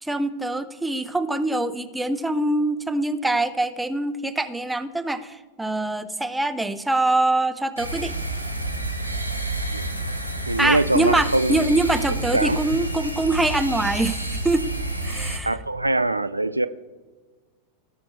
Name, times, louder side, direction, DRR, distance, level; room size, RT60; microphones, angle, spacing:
voice 1, 0.0-8.1 10.6-14.6 15.0-15.5, right 2 dB, 5° right, 0.5 m, -24 dB
sound 1, 7.8-15.4, right 2 dB, 90° left, 1.1 m, -29 dB
voice 2, 10.5-11.7 12.1-12.6 15.4-16.7, right 2 dB, 85° right, 0.3 m, -23 dB
17.5 x 5.9 x 3.2 m
figure-of-eight pair, 90°, 0 cm